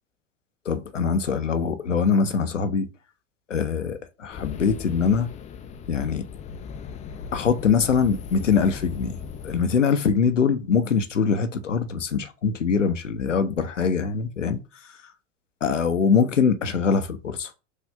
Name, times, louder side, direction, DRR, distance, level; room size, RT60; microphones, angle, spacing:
voice 1, 0.7-2.9 3.5-5.3 5.9-6.2 7.3-9.2 9.4-14.6 15.6-17.5, left 6 dB, 85° left, 0.7 m, -23 dB
sound 1, 4.3-9.6, left 6 dB, 20° left, 0.4 m, -38 dB
6.4 x 2.5 x 3.3 m
figure-of-eight pair, 80°, 36 cm